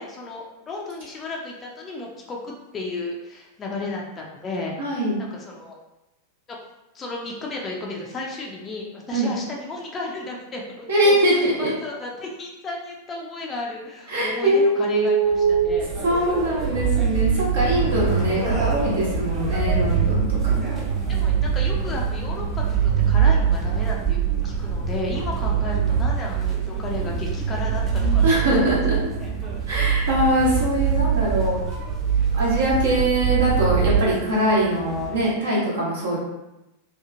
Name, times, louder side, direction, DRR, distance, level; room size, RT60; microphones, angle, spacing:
voice 1, 0.0-5.8 6.5-6.6 6.9-15.9 21.1-28.8 29.2-29.3, left 2 dB, 20° left, -2 dB, 0.4 m, -34 dB
voice 2, 4.8-5.2 9.1-9.3 10.9-11.7 14.1-15.8 16.0-20.8 28.2-29.0 29.7-31.6 32.4-36.2, right 1 dB, 65° right, -6 dB, 1.0 m, -22 dB
sound 1, 15.3-34.0, right 7 dB, 35° right, 0.9 m, -23 dB
sound 2, 15.8-35.3, right 1 dB, 15° right, 0.7 m, -39 dB
Bird, 17.8-23.9, equal, 90° left, 0.9 m, -34 dB
2.8 x 2.4 x 2.5 m, 0.94 s
figure-of-eight pair, 90°, 0 cm